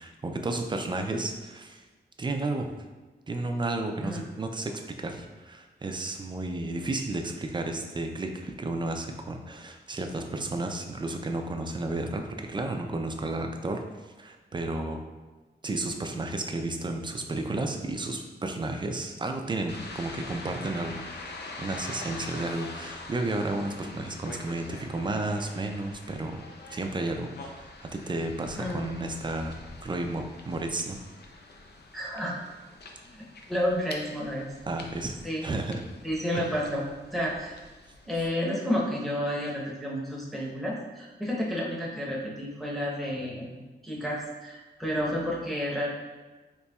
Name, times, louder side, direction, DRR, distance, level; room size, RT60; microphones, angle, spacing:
voice 1, 0.0-1.8 2.2-2.7 3.3-4.7 5.0-13.8 14.2-15.0 15.6-26.4 26.7-31.0 34.7-35.8 36.3-36.5, right 2 dB, 25° right, 4 dB, 0.4 m, -32 dB
sound 1, 19.7-38.3, left 2 dB, 65° left, 0.5 m, -44 dB
voice 2, 31.9-32.3 33.1-34.5 35.2-35.4 36.0-36.8 37.1-37.5 38.1-45.9, equal, ahead, -4 dB, 0.8 m, -31 dB
4.2 x 2.9 x 2.3 m, 1.2 s
wide cardioid pair, 80°, 19 cm